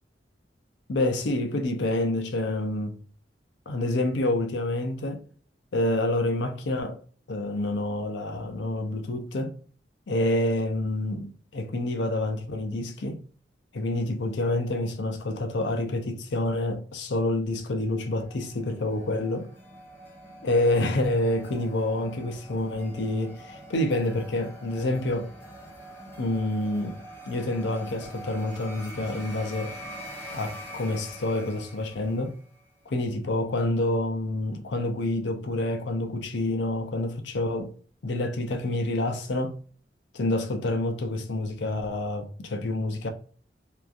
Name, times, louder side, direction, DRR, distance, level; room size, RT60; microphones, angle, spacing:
voice 1, 0.9-3.0 3.7-5.2 5.7-7.0 7.3-9.5 10.1-13.2 13.7-19.5 20.4-25.3 26.2-29.7 30.3-32.4 32.9-37.7 38.0-39.6 40.1-43.1, left 1 dB, 75° left, 0.5 m, -28 dB
sound 1, 17.9-32.6, equal, 10° left, 0.7 m, -44 dB
2.9 x 2.4 x 2.4 m
head